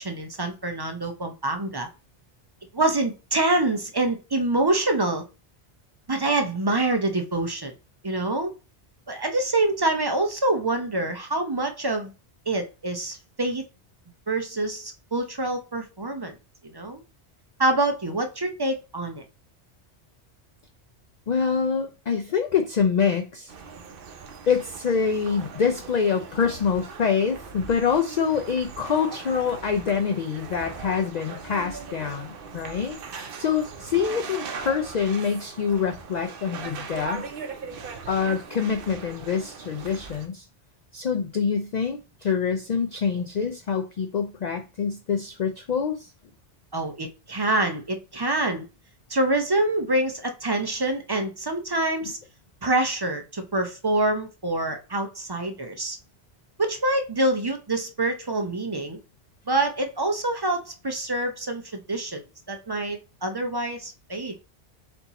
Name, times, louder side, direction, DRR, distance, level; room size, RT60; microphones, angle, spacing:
voice 1, 0.0-1.9 2.7-5.2 6.1-7.7 8.0-8.5 9.1-12.1 12.5-13.6 14.3-16.4 16.6-17.0 17.6-19.2 46.7-48.6 49.1-52.2 52.6-56.0 56.6-59.0 59.5-62.2 62.5-64.3, right 2 dB, 30° right, 0.4 m, -26 dB
voice 2, 21.3-23.5 24.5-37.3 38.1-40.4 40.9-46.1, left 6 dB, 55° left, 0.5 m, -25 dB
sound 1, 23.5-40.3, right 5 dB, 60° right, 0.8 m, -39 dB
4.5 x 2.7 x 4.0 m
omnidirectional pair, 1.1 m